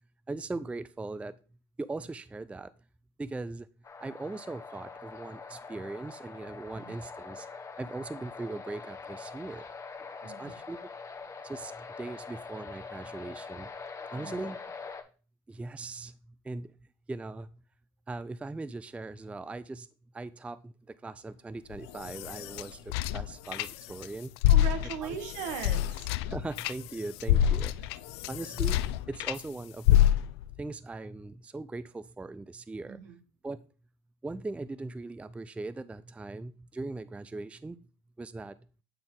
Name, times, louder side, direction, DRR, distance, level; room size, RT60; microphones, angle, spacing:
voice 1, 0.3-1.4 1.8-2.7 3.2-3.7 4.0-7.5 7.8-9.6 10.2-10.9 11.4-13.7 14.1-14.6 15.5-16.2 16.4-16.7 17.1-17.6 18.1-19.9 20.1-24.3 26.3-27.9 28.3-30.0 30.6-33.0 33.4-33.6 34.2-37.8 38.2-38.6, right 2 dB, 10° right, 16 dB, 0.3 m, -39 dB
sound 1, 3.8-15.0, left 4 dB, 25° left, 1.1 m, -44 dB
voice 2, 10.2-10.6 14.1-14.5 24.5-26.1 32.9-33.2, right 8 dB, 70° right, 8 dB, 1.3 m, -39 dB
sound 2, 21.7-24.1 24.4-29.4 29.9-30.5, left 12 dB, 80° left, 0.4 m, -27 dB
8.7 x 4.0 x 3.8 m, 0.36 s
hypercardioid pair, 75°, 13 cm